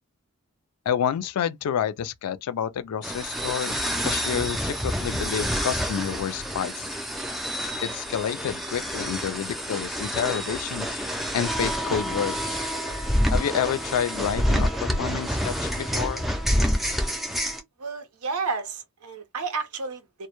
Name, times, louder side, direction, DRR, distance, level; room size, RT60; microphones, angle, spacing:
voice 1, 0.9-3.7 4.0-6.8 7.8-11.0 11.3-12.6 13.3-16.3, left 8 dB, 85° left, 0.3 m, -29 dB
sound 1, 3.0-17.6, equal, ahead, 0.3 m, -28 dB
voice 2, 17.8-20.3, right 4 dB, 80° right, 0.7 m, -31 dB
2.1 x 2.0 x 2.9 m
head